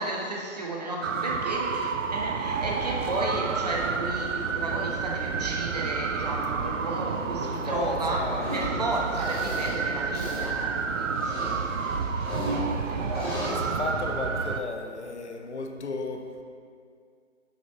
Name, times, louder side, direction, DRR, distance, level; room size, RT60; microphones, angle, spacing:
voice 1, 0.0-13.7, right 2 dB, 35° right, -1 dB, 0.7 m, -33 dB
sound 1, 1.0-14.6, right 5 dB, 80° right, 0.6 m, -30 dB
voice 2, 7.4-8.9 12.5-12.6 13.1-16.4, left 3 dB, 65° left, 3 dB, 0.8 m, -35 dB
sound 2, 8.4-8.6 9.1-9.7 10.1-10.5 11.2-12.5 13.1-13.5, left 1 dB, 20° left, 1.1 m, -36 dB
6.9 x 5.8 x 3.0 m, 2.2 s
figure-of-eight pair, 160°, 37 cm